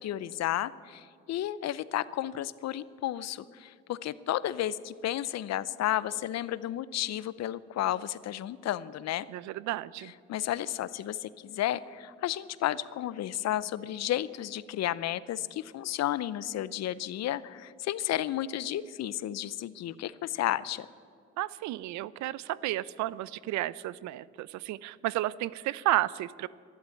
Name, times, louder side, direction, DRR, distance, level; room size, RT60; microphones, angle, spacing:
voice 1, 0.0-9.3 10.3-20.9, left 12 dB, 60° left, 18 dB, 0.7 m, -32 dB
voice 2, 9.3-10.1 21.4-26.5, right 16 dB, 70° right, 20 dB, 0.5 m, -32 dB
12.5 x 11.5 x 9.3 m, 2.2 s
hypercardioid pair, 60°, 30 cm